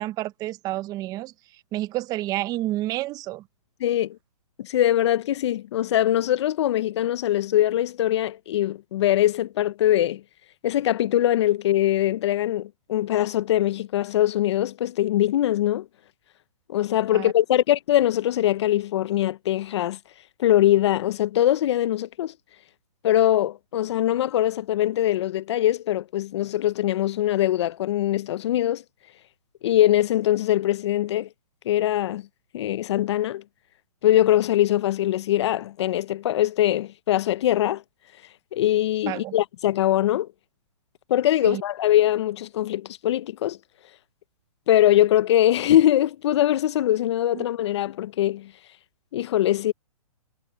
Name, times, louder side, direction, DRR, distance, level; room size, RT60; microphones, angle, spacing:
voice 1, 0.0-1.3 1.7-3.4 17.1-17.3 39.1-39.3 41.4-41.6 47.3-47.4, right 16 dB, 20° right, 0.8 m, -29 dB
voice 2, 3.8-4.2 4.6-10.2 10.6-15.9 16.7-20.0 20.4-22.3 23.0-28.8 29.6-31.3 31.7-32.2 32.5-33.4 34.0-37.8 38.5-40.3 41.1-43.6 44.7-48.5 49.1-49.7, left 13 dB, 45° left, 0.8 m, -22 dB
hypercardioid pair, 145°, 19 cm